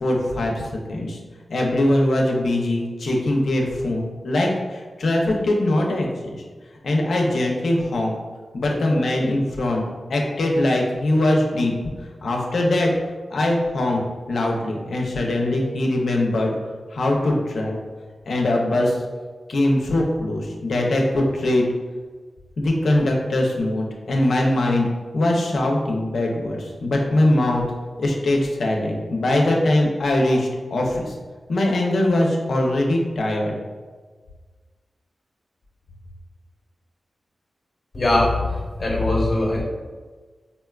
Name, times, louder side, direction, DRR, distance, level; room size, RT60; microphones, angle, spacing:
voice 1, 0.0-1.2 1.5-6.4 6.8-8.1 8.5-9.8 10.1-11.7 12.2-12.9 13.3-14.0 14.3-16.6 16.9-17.8 18.3-19.0 19.5-21.7 22.6-24.9 25.1-27.6 28.0-31.1 31.5-33.5, left 1 dB, 80° left, 0 dB, 0.5 m, -21 dB
voice 2, 37.9-38.3 38.8-39.6, left 2 dB, 40° left, -3 dB, 0.9 m, -20 dB
4.0 x 2.2 x 2.3 m, 1.4 s
wide cardioid pair, 105°, 0 cm